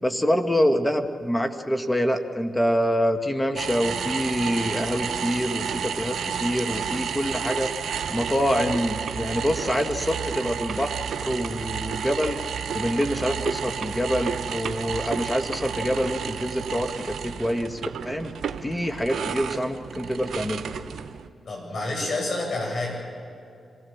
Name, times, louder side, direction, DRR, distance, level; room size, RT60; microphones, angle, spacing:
voice 1, 0.0-7.7 8.1-12.4 12.7-17.8 18.0-18.3 18.6-20.6, equal, 15° left, 6 dB, 1.9 m, -26 dB
sound 1, 3.6-21.3, right 7 dB, 75° right, 0.9 m, -31 dB
voice 2, 21.5-23.0, left 2 dB, 65° left, -1 dB, 7.9 m, -29 dB
26.5 x 17.5 x 7.3 m, 2.5 s
supercardioid pair, 45°, 0 cm